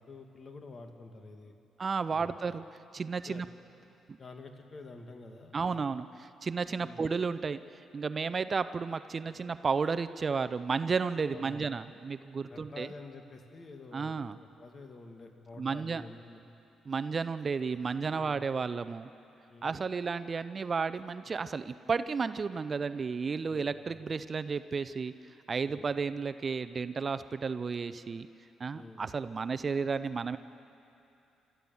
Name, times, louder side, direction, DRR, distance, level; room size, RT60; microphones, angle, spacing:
voice 1, 0.1-1.5 2.1-2.5 3.3-3.4 4.2-5.8 6.8-7.0 11.3-11.7 12.5-14.2 14.6-16.4 18.1-18.4 19.5-19.7 23.5-24.0 25.6-25.9 28.7-29.0, left 3 dB, 40° left, 4 dB, 2.1 m, -48 dB
voice 2, 1.8-2.6 2.9-3.5 5.5-6.1 6.4-7.6 7.9-12.9 13.9-14.4 15.6-16.0 16.9-19.1 19.6-25.1 25.5-28.3 28.6-30.4, right 5 dB, 40° right, 12 dB, 0.5 m, -32 dB
28.0 x 13.5 x 7.1 m, 2.8 s
cardioid pair, 90°, 0 cm